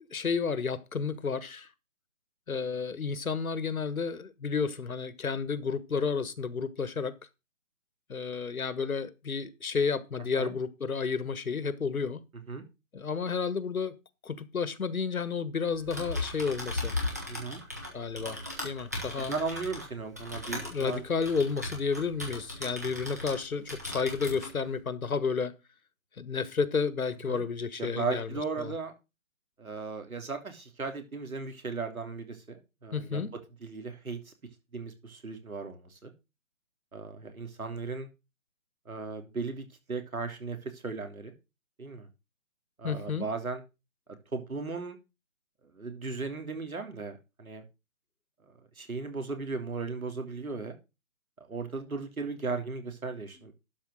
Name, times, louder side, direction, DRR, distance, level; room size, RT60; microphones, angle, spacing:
voice 1, 0.1-1.7 2.5-7.2 8.1-12.2 12.9-13.9 14.2-16.9 17.9-18.4 18.6-19.3 20.5-25.5 26.2-28.7 32.9-33.3 42.8-43.3, left 5 dB, 85° left, 1.4 m, -31 dB
Typing, 15.7-23.4 23.7-24.5, left 2 dB, 10° right, 1.1 m, -37 dB
voice 2, 17.3-17.6 19.2-21.0 27.3-27.4 27.8-28.9 29.6-33.3 33.6-34.3 34.7-36.1 36.9-38.1 38.8-41.3 41.8-42.1 42.8-43.6 44.3-45.0 45.7-47.6 48.8-50.7 51.5-53.5, right 4 dB, 85° right, 3.1 m, -36 dB
12.0 x 4.6 x 6.3 m
hypercardioid pair, 180°, 41 cm